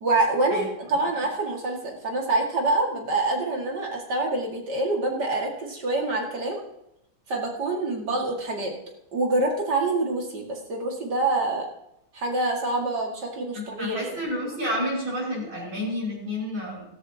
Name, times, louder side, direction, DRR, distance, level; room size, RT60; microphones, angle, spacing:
voice 1, 0.0-6.6 7.3-8.7 9.1-11.7 12.1-14.3, right 2 dB, 60° right, 0 dB, 2.7 m, -26 dB
voice 2, 13.5-16.8, equal, 80° right, -6 dB, 6.6 m, -30 dB
15.5 x 14.0 x 2.9 m, 0.82 s
omnidirectional pair, 2.1 m